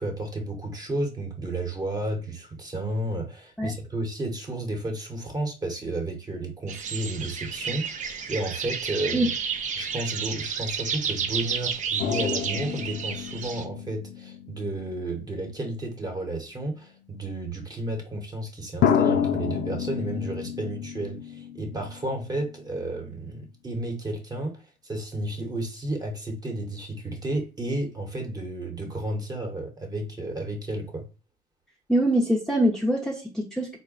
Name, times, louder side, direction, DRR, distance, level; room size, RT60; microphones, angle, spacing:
voice 1, 0.0-9.3 9.8-31.0, right 1 dB, 20° right, 1.0 m, -32 dB
sound 1, 6.7-13.6, right 6 dB, 45° right, 0.6 m, -31 dB
sound 2, 12.0-15.9 16.8-16.9 18.8-22.1 22.4-22.5, left 8 dB, 65° left, 0.6 m, -29 dB
voice 2, 31.9-33.8, right 1 dB, 5° left, 0.7 m, -24 dB
3.8 x 2.2 x 3.7 m
cardioid pair, 110°, 17 cm